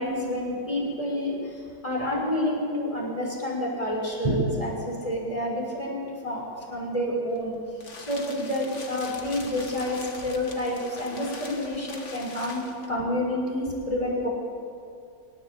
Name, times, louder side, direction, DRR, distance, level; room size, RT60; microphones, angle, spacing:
voice 1, 0.0-7.5 8.0-12.6 12.9-14.3, left 1 dB, 15° left, -2 dB, 6.2 m, -29 dB
sound 1, 7.3-13.0, left 3 dB, 40° left, 2.0 m, -43 dB
24.5 x 18.0 x 8.7 m, 2.5 s
omnidirectional pair, 1.9 m